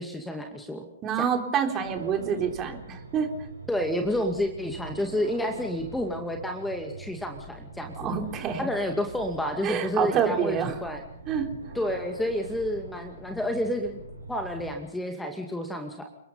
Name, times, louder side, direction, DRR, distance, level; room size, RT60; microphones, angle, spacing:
voice 1, 0.0-0.8 1.2-1.3 3.7-8.1 8.6-11.0 11.7-14.0 14.3-16.0, left 1 dB, 5° left, 4 dB, 2.4 m, -30 dB
voice 2, 1.0-3.3 8.0-8.7 9.6-10.8 11.3-11.5, right 7 dB, 25° right, 5 dB, 3.7 m, -27 dB
sound 1, 1.8-14.7, right 3 dB, 85° right, 7.7 m, -43 dB
30.0 x 20.5 x 5.7 m, 0.76 s
figure-of-eight pair, 115°, 0 cm